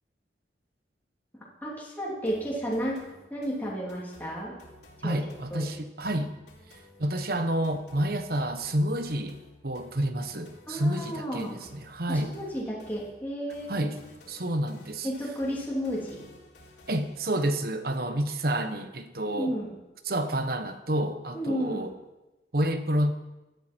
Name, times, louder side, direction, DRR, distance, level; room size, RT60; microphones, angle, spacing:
voice 1, 1.6-3.0 3.3-4.5 5.0-5.2 5.5-5.7 10.7-11.5 12.1-13.9 15.0-16.2 19.3-19.7 21.3-21.9, equal, 10° left, -6 dB, 3.2 m, -32 dB
sound 1, 2.3-17.3, left 1 dB, 70° left, 3.9 m, -54 dB
voice 2, 5.0-6.3 7.0-12.3 13.7-14.0 14.3-15.1 16.9-19.5 20.0-21.9 22.5-23.1, right 1 dB, 55° right, 9 dB, 1.2 m, -29 dB
16.5 x 12.5 x 4.5 m, 1.0 s
head